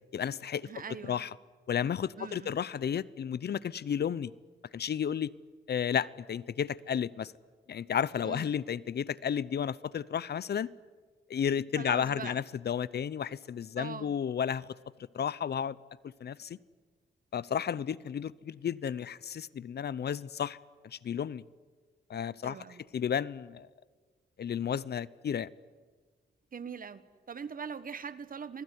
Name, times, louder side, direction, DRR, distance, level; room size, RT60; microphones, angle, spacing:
voice 1, 0.1-0.7 1.1-1.3 1.7-4.3 4.7-5.3 5.7-7.3 7.7-10.7 11.3-14.7 15.1-15.8 16.2-16.6 17.3-20.6 20.8-21.4 22.1-22.6 22.9-23.7 24.4-25.5, left 8 dB, 65° left, 0.7 m, -32 dB
voice 2, 0.6-1.2 2.2-2.6 8.2-8.5 11.8-12.4 13.8-14.1 22.4-22.8 26.5-28.6, right 6 dB, 50° right, 1.4 m, -42 dB
26.0 x 20.0 x 9.7 m
wide cardioid pair, 110°, 18 cm